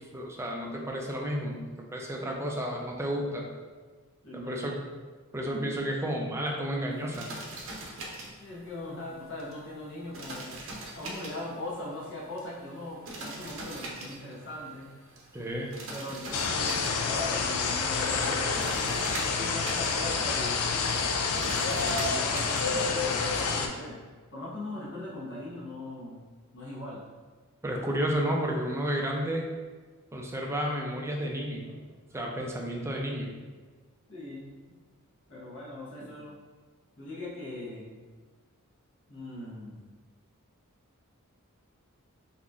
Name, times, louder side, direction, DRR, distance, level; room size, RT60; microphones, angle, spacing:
voice 1, 0.0-3.4 4.3-4.8 5.3-7.3 15.3-15.7 27.6-29.4 30.1-31.7 32.1-33.3 36.0-36.1, equal, 10° right, 0 dB, 0.4 m, -32 dB
voice 2, 4.2-4.8 8.4-10.5 10.9-14.9 15.9-16.8 17.0-18.6 19.1-20.8 21.5-24.0 24.3-26.2 26.5-27.0 27.8-27.9 29.2-29.3 31.7-31.8 34.1-34.5 35.3-36.4 37.0-38.0 39.1-39.9, left 1 dB, 60° left, -7 dB, 1.2 m, -40 dB
sound 1, 6.9-22.7, right 2 dB, 60° right, 0.7 m, -43 dB
sound 2, 16.3-23.7, left 4 dB, 80° left, 0.4 m, -28 dB
3.9 x 2.8 x 2.4 m, 1.4 s
head